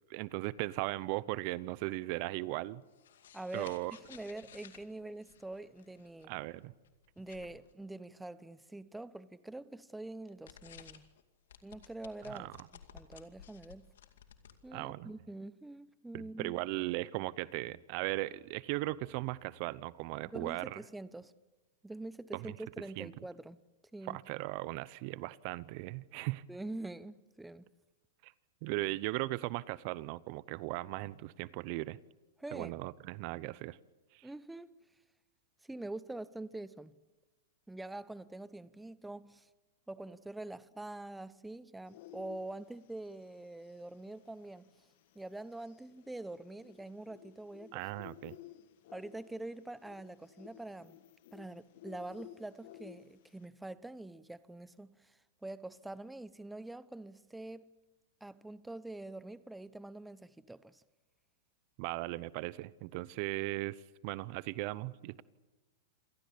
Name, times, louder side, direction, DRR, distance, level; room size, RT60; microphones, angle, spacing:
voice 1, 0.1-2.8 3.5-3.9 6.3-6.7 12.3-12.5 14.7-15.1 16.1-20.8 22.3-22.5 23.0-23.1 24.1-26.4 28.2-28.3 28.6-32.0 32.5-33.8 34.1-34.3 47.7-48.3 61.8-65.2, right 19 dB, 50° right, 0.7 m, -38 dB
sound 1, 2.8-7.7 10.3-11.2 11.5-14.9, left 8 dB, 80° left, 2.3 m, -57 dB
voice 2, 3.3-3.7 4.1-6.3 7.2-11.1 11.6-12.5 12.9-13.8 14.6-16.5 20.3-21.3 21.8-23.6 23.9-24.2 26.5-27.7 32.4-32.8 34.2-34.8 35.7-36.9 37.7-39.5 39.9-44.7 45.1-47.8 48.9-51.0 51.3-57.7 58.2-60.8, right 2 dB, 5° right, 0.8 m, -45 dB
sound 2, 41.9-53.5, left 13 dB, 60° left, 2.1 m, -56 dB
27.0 x 18.0 x 8.4 m
hypercardioid pair, 125°, 0 cm